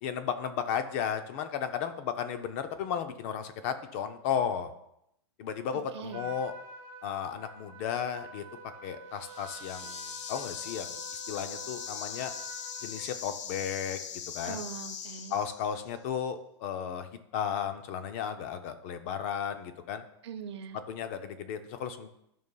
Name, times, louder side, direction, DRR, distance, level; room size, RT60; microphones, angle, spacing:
voice 1, 0.0-4.7 5.4-6.5 7.0-8.4 8.8-11.0 11.3-12.3 12.8-14.0 14.3-14.6 15.3-17.1 17.3-20.0 20.9-22.1, left 8 dB, 30° left, 10 dB, 0.4 m, -34 dB
voice 2, 5.7-6.3 9.8-9.9 14.4-15.4 20.2-20.8, right 7 dB, 65° right, 8 dB, 0.7 m, -42 dB
Trumpet, 6.1-13.0, right 3 dB, 20° right, 1.0 m, -47 dB
sound 1, 9.1-15.9, left 8 dB, 85° left, 0.6 m, -41 dB
12.5 x 5.3 x 2.2 m, 0.79 s
supercardioid pair, 170°, 15 cm